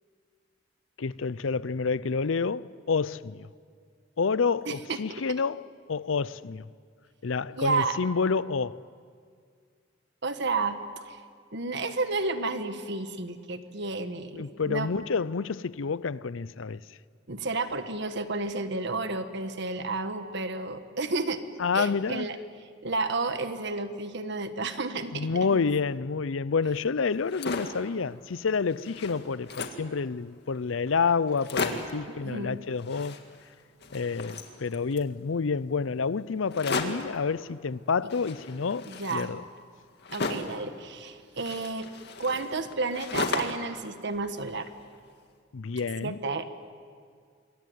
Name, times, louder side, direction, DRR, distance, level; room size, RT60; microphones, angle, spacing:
voice 1, 1.0-3.5 4.2-6.7 7.2-8.8 14.3-16.8 21.6-22.3 25.1-33.2 33.9-39.4 45.5-46.2, left 5 dB, 75° left, 0.6 m, -29 dB
voice 2, 4.6-5.0 7.6-8.0 10.2-11.2 11.5-14.9 17.3-21.4 21.7-22.4 22.8-25.6 32.1-32.6 38.8-39.3 40.1-41.9 42.2-44.7 46.0-46.6, right 3 dB, 60° right, 1.6 m, -31 dB
sound 1, 27.1-27.9 28.3-28.4 28.7-29.9 30.5-30.6 30.9-31.0 31.3-32.0 32.8-33.5 33.8-35.1 36.5-37.2 38.1-40.6 41.4-43.7 44.0-45.0, left 3 dB, 60° left, 2.0 m, -35 dB
26.5 x 22.5 x 9.4 m
head